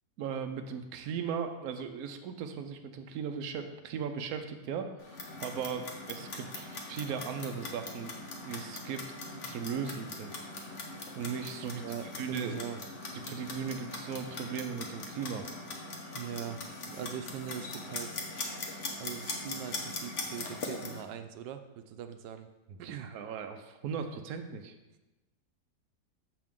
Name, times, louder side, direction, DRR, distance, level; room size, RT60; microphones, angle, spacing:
voice 1, 0.2-4.9 5.4-8.1 8.4-10.4 11.2-11.8 12.2-12.6 13.2-15.5 22.7-24.7, right 7 dB, 70° right, 6 dB, 1.1 m, -37 dB
Clock, 5.0-21.0, left 2 dB, 50° left, 1.3 m, -41 dB
voice 2, 11.8-12.8 16.1-16.6 16.9-18.2 19.0-22.5 22.8-23.1, right 9 dB, 90° right, 8 dB, 1.2 m, -41 dB
7.5 x 6.1 x 3.6 m, 1.0 s
omnidirectional pair, 1.8 m